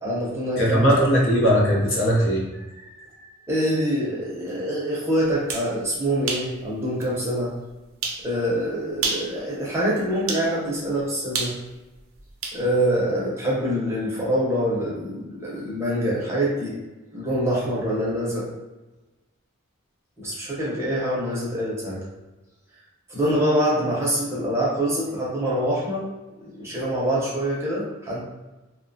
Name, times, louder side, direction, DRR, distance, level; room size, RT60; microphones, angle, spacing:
voice 1, 0.0-0.9 3.5-7.5 8.2-11.6 12.5-16.8 17.1-18.5 20.2-22.0 23.1-26.1 26.4-28.2, equal, 15° right, -6 dB, 0.6 m, -25 dB
voice 2, 0.6-2.9 3.2-3.4, equal, 60° left, -3 dB, 0.6 m, -20 dB
sound 1, 5.3-5.7 6.3-6.5 7.0-7.1 8.0-8.2 8.9-9.3 10.3-10.5 11.3-12.6, right 4 dB, 70° right, 0.5 m, -28 dB
2.7 x 2.1 x 2.6 m, 1.1 s
head